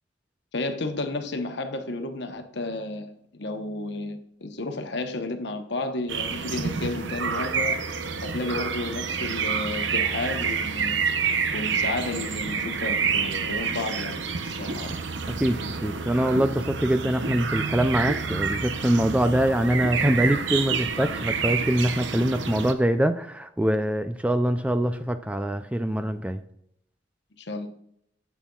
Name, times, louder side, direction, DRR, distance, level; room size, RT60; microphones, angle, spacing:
voice 1, 0.5-7.8 8.2-11.0 11.5-15.0 27.4-27.7, left 2 dB, 60° left, 6 dB, 1.0 m, -32 dB
sound 1, 6.1-22.7, right 5 dB, 70° right, 0.8 m, -28 dB
voice 2, 15.3-26.4, right 1 dB, 5° right, 9 dB, 0.3 m, -24 dB
9.2 x 8.2 x 2.4 m, 0.73 s
head